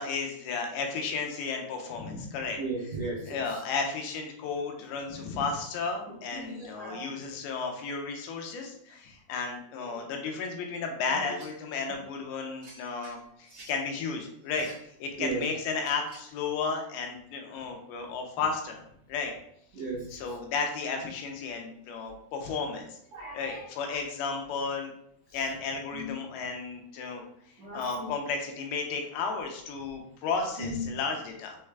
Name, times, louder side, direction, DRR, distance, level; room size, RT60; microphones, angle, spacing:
voice 1, 0.0-2.6 3.3-14.7 15.0-18.8 19.1-19.3 20.1-23.0 23.3-24.9 25.3-27.2 27.7-31.6, left 4 dB, 85° left, 3 dB, 2.6 m, -33 dB
voice 2, 2.6-3.4 6.1-7.0 9.8-10.0 11.2-11.3 15.2-15.4 19.7-20.1 23.1-23.6 23.9-24.0 25.3-25.4 25.9-26.1 27.0-27.1 27.6-28.1 30.6-30.9, right 2 dB, 75° right, -8 dB, 1.6 m, -36 dB
sound 1, 11.3-11.7 12.6-13.8 14.4-14.9 15.8-16.4, right 2 dB, 50° right, 1.0 m, -52 dB
6.3 x 2.3 x 3.2 m, 0.71 s
omnidirectional pair, 4.4 m